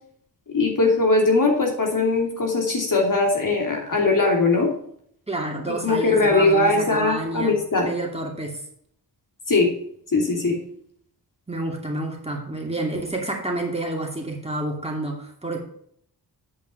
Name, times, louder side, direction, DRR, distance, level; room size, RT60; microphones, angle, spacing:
voice 1, 0.5-4.7 5.8-7.9 9.5-9.7 10.1-10.6, left 3 dB, 50° left, 0 dB, 3.0 m, -20 dB
voice 2, 5.3-8.6 11.5-15.6, right 2 dB, 15° right, 0 dB, 2.5 m, -29 dB
8.4 x 5.4 x 5.5 m, 0.65 s
cardioid pair, 60°, 40 cm